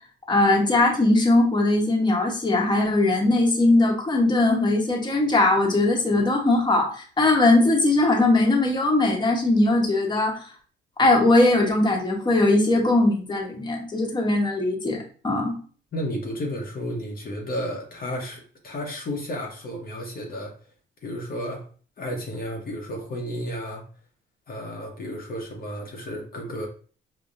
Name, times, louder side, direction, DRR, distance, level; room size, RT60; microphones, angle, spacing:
voice 1, 0.3-10.4 11.0-15.6, left 2 dB, 20° left, 0 dB, 1.0 m, -20 dB
voice 2, 15.9-20.5 21.0-21.6 22.0-23.8 24.5-26.7, equal, 50° left, 0 dB, 0.9 m, -32 dB
5.5 x 2.2 x 2.5 m, 0.41 s
cardioid pair, 90°, 20 cm